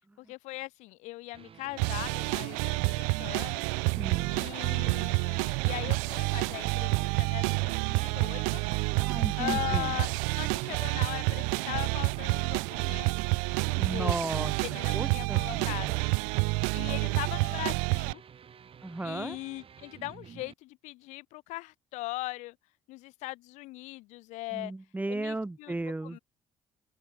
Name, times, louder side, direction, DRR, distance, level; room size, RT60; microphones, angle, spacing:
voice 1, 0.2-3.6 4.3-8.6 9.4-10.1 10.4-13.4 13.8-15.9 16.7-18.2 19.0-22.6 22.9-24.7 25.1-25.8 26.0-26.2, left 20 dB, 65° left, 0.6 m, -39 dB
sound 1, 1.3-20.5, right 7 dB, 45° right, 8.0 m, -51 dB
sound 2, 1.8-18.1, right 38 dB, 70° right, 0.5 m, -29 dB
voice 2, 4.0-4.4 8.9-9.9 13.7-14.5 14.9-16.0 18.8-19.4 24.5-26.2, right 2 dB, 10° right, 1.2 m, -35 dB
open air
hypercardioid pair, 55°, 13 cm